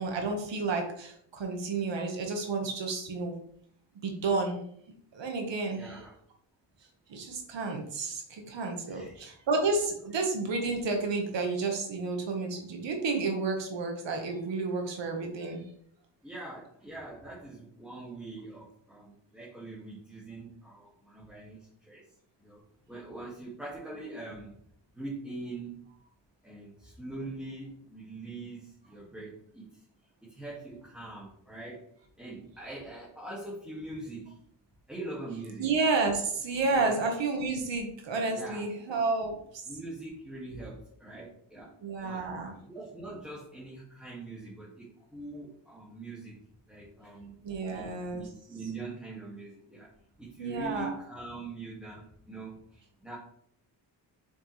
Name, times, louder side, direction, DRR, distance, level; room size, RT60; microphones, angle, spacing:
voice 1, 0.0-3.3 4.0-4.6 5.1-6.0 7.1-15.6 35.6-39.4 41.8-42.5 47.4-48.2 50.4-50.9, right 3 dB, 85° right, 3 dB, 1.8 m, -31 dB
voice 2, 5.7-6.1 8.9-9.1 16.2-22.1 22.4-24.5 24.9-25.8 26.4-29.9 30.2-31.9 32.2-34.4 34.9-35.7 36.7-37.0 38.3-38.6 39.7-41.7 42.0-42.2 42.6-46.4 46.7-47.3 47.7-49.9 50.2-53.1, right 2 dB, ahead, -8 dB, 2.3 m, -43 dB
7.4 x 6.3 x 3.4 m, 0.67 s
wide cardioid pair, 140°, 43 cm